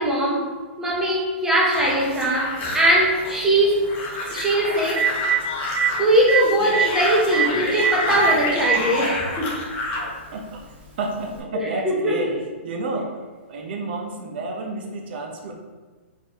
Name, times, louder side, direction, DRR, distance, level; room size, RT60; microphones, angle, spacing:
voice 1, 0.0-4.0 4.3-5.4 6.0-9.7 11.5-12.4, right 1 dB, 5° right, -4 dB, 0.8 m, -21 dB
sound 1, 1.7-10.1, left 2 dB, 25° left, 0.9 m, -29 dB
Telephone, 2.2-2.3 4.4-4.5 4.8-5.3 5.8-5.9 6.3-6.4 6.7-6.8 7.3-7.4 7.8-7.9 8.2-8.8 9.8-9.9 11.3-11.4, right 9 dB, 30° right, 1.0 m, -21 dB
voice 2, 11.0-12.4 12.6-13.2 13.5-15.5, right 3 dB, 55° right, 2 dB, 0.8 m, -30 dB
3.6 x 3.0 x 4.4 m, 1.4 s
hypercardioid pair, 150°, 7 cm